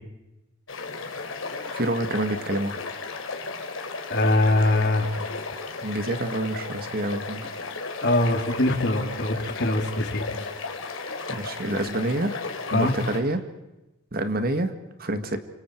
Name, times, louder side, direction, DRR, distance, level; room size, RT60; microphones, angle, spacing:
sound 1, 0.7-13.2, left 4 dB, 85° left, 3.2 m, -35 dB
voice 1, 1.7-2.8 5.8-7.4 11.3-12.4 12.7-13.4 14.1-14.7 15.0-15.4, right 1 dB, 50° right, 8 dB, 1.9 m, -27 dB
voice 2, 4.1-5.1 8.0-10.3 12.7-12.9, left 1 dB, 55° left, 4 dB, 3.2 m, -22 dB
29.5 x 26.0 x 4.7 m, 0.97 s
head